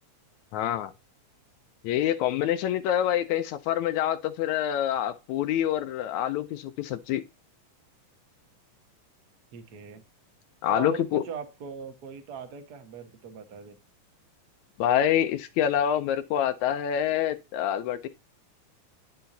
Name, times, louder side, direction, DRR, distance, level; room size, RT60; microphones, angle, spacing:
voice 1, 0.5-0.9 1.8-7.2 10.6-11.2 14.8-18.1, left 10 dB, 80° left, 1.7 m, -26 dB
voice 2, 9.5-10.0 10.7-13.8, right 7 dB, 80° right, 0.9 m, -39 dB
10.5 x 5.8 x 2.7 m
omnidirectional pair, 3.9 m